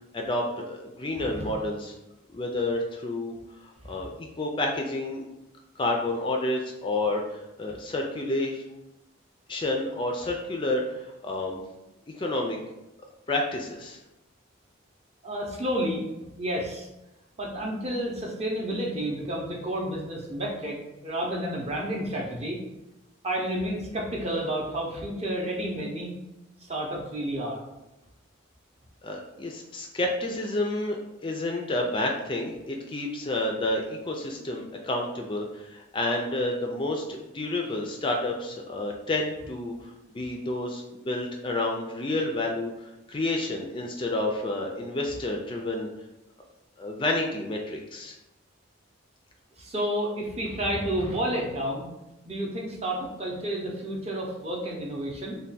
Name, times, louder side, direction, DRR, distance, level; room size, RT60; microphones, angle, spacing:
voice 1, 0.1-1.9 2.3-3.3 3.6-5.3 5.8-8.6 9.5-11.6 12.1-12.6 13.3-14.0 29.0-45.9 46.8-48.2, left 2 dB, 25° left, 1 dB, 0.3 m, -30 dB
voice 2, 1.2-1.5 3.8-4.0 7.7-7.8 15.2-16.0 16.3-16.9 17.4-22.6 23.2-26.1 26.7-27.6 49.6-51.9 52.3-55.4, right 1 dB, 30° right, -2 dB, 0.6 m, -30 dB
3.3 x 2.2 x 4.0 m, 0.93 s
head